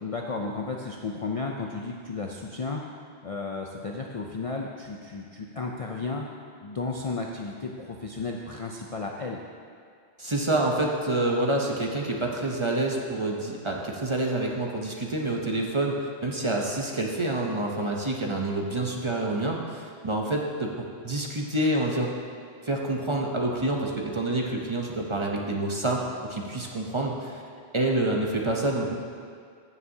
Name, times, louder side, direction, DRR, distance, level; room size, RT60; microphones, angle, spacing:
voice 1, 0.0-2.8 3.2-6.2 6.6-9.4, left 3 dB, 45° left, 0 dB, 0.4 m, -33 dB
voice 2, 10.2-20.7 21.0-22.1 22.6-27.4 27.7-28.9, right 2 dB, 30° right, -1 dB, 0.7 m, -27 dB
15.0 x 7.0 x 2.8 m, 2.2 s
omnidirectional pair, 1.1 m